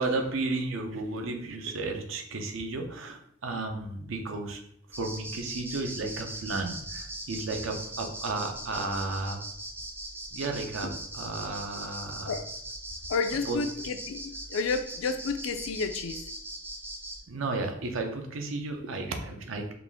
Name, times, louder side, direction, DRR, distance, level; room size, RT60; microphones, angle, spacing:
voice 1, 0.0-4.6 5.0-9.4 10.3-12.4 13.5-13.6 17.3-19.7, right 3 dB, 85° right, 0.6 m, -33 dB
sound 1, 4.9-17.2, right 1 dB, 10° right, 0.4 m, -40 dB
voice 2, 13.1-16.3, left 4 dB, 80° left, 0.4 m, -31 dB
4.0 x 2.4 x 3.4 m
head